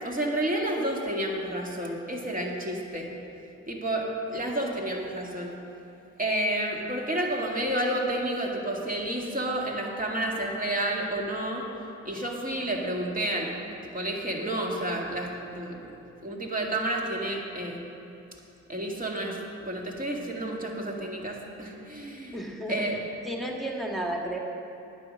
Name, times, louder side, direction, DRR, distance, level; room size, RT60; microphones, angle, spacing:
voice 1, 0.0-3.1 3.7-5.6 6.2-11.7 12.0-13.5 13.8-16.0 16.2-17.8 18.7-19.4 19.6-22.4 22.7-23.0, right 1 dB, 25° right, -1 dB, 1.9 m, -30 dB
voice 2, 22.3-22.8 23.2-24.4, right 1 dB, ahead, 0 dB, 1.7 m, -32 dB
9.7 x 7.9 x 6.3 m, 2.7 s
cardioid pair, 60°, 31 cm